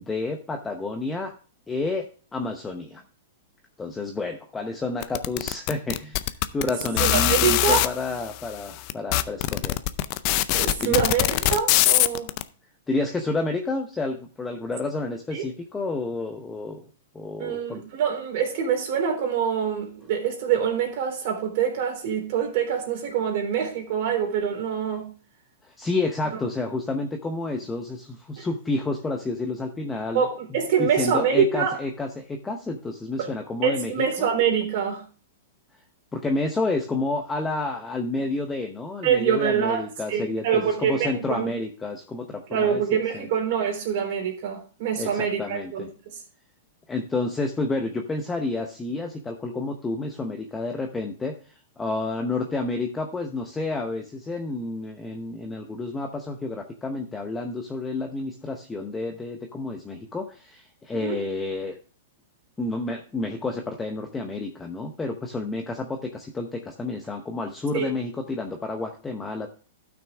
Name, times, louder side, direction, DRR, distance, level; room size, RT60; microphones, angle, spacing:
voice 1, 0.0-1.3 1.7-2.0 2.3-3.0 3.8-6.2 6.5-9.8 10.8-11.0 12.9-16.9 17.1-17.8 25.8-30.2 30.8-34.1 36.1-42.8 43.1-43.3 45.0-45.9 46.9-61.8 62.6-69.5, left 3 dB, 10° left, 0.8 m, -30 dB
sound 1, 5.0-7.9 8.6-8.7 8.9-12.4, left 16 dB, 40° left, 0.5 m, -21 dB
voice 2, 6.7-7.8 10.5-12.3 15.3-15.5 17.4-25.1 28.4-28.5 30.1-31.8 33.2-33.3 33.6-35.0 39.0-39.8 40.1-41.5 42.5-46.2 60.9-61.2 67.7-67.9, right 7 dB, 50° right, 3.4 m, -25 dB
12.0 x 6.2 x 3.4 m
hypercardioid pair, 150°, 0 cm